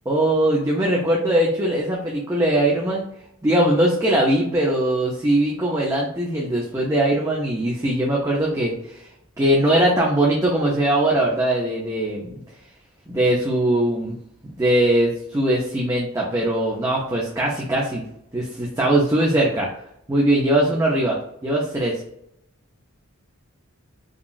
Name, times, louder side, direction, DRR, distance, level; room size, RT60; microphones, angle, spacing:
voice 1, 0.1-3.1 3.4-9.0 9.4-12.4 13.1-14.2 14.4-18.0 18.3-19.7 20.1-22.0, right 1 dB, 15° right, -3 dB, 0.5 m, -21 dB
3.7 x 2.3 x 2.4 m, 0.75 s
head